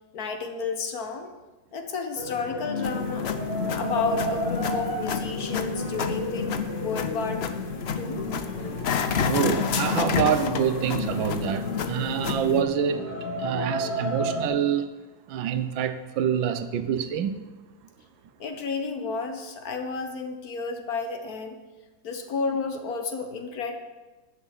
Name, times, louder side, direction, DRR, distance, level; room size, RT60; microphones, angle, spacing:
voice 1, 0.1-1.3 1.7-3.3 3.7-7.4 8.0-8.3 18.4-21.6 22.0-23.7, left 4 dB, 55° left, 1.5 m, -31 dB
sound 1, 2.2-14.5, left 1 dB, 25° left, 2.8 m, -32 dB
sound 2, 2.8-12.6, left 6 dB, 90° left, 0.5 m, -30 dB
voice 2, 9.2-13.1 13.4-14.9 15.3-17.5, right 9 dB, 90° right, 1.6 m, -26 dB
11.0 x 6.6 x 8.2 m
omnidirectional pair, 2.0 m